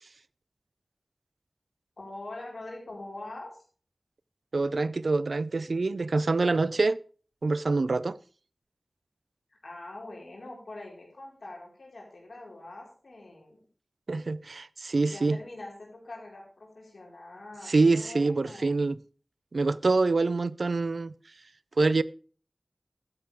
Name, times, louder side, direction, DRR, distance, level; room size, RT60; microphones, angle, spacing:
voice 1, 2.0-3.5 9.6-13.6 15.0-18.8, left 2 dB, 90° left, 4.5 m, -43 dB
voice 2, 4.5-7.0 7.4-8.2 14.1-15.4 17.7-19.0 19.5-21.1 21.8-22.0, right 3 dB, 90° right, 0.4 m, -25 dB
13.0 x 9.8 x 3.5 m
wide cardioid pair, 45°, 0 cm